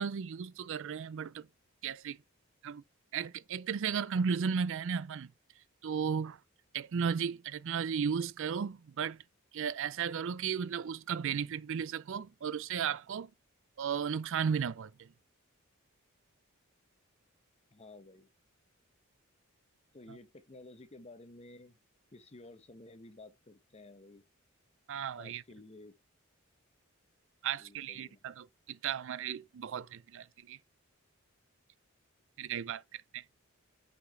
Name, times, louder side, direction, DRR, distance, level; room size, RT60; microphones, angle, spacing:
voice 1, 0.0-1.5 1.8-2.2 2.6-2.8 3.1-5.3 5.8-6.4 6.7-9.2 9.5-13.3 13.8-15.1 24.9-25.4 27.4-30.6 32.4-33.2, right 7 dB, 65° right, 0.4 m, -35 dB
voice 2, 17.7-18.3 19.9-21.8 22.1-24.2 25.2-26.0 27.6-28.2, left 2 dB, 30° left, 0.9 m, -53 dB
5.9 x 5.7 x 4.7 m
head